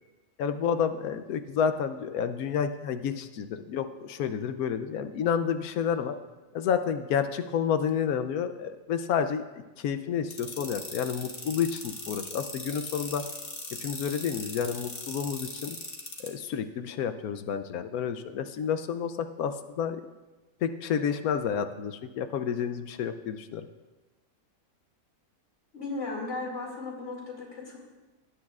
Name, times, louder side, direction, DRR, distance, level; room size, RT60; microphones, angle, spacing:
voice 1, 0.4-6.1 6.5-13.2 13.8-15.8 16.2-20.0 20.6-23.7, left 7 dB, 75° left, 10 dB, 1.1 m, -30 dB
sound 1, 10.3-16.3, left 2 dB, 30° left, 1.4 m, -39 dB
voice 2, 25.7-27.8, left 3 dB, 50° left, -2 dB, 2.7 m, -36 dB
17.5 x 9.6 x 2.4 m, 1.1 s
omnidirectional pair, 1.6 m